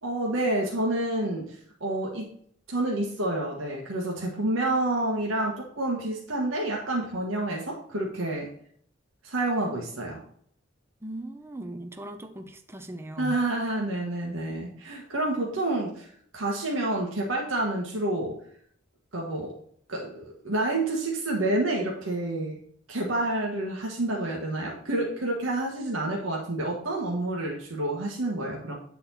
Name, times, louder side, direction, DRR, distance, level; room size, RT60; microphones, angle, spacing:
voice 1, 0.0-2.3 2.7-8.5 9.2-10.2 13.2-16.1 16.3-18.4 19.1-19.5 19.9-22.6 22.9-28.7, right 2 dB, 85° right, -2 dB, 1.4 m, -28 dB
voice 2, 11.0-13.4, right 1 dB, 15° right, 6 dB, 0.5 m, -38 dB
8.5 x 4.1 x 4.2 m, 0.62 s
head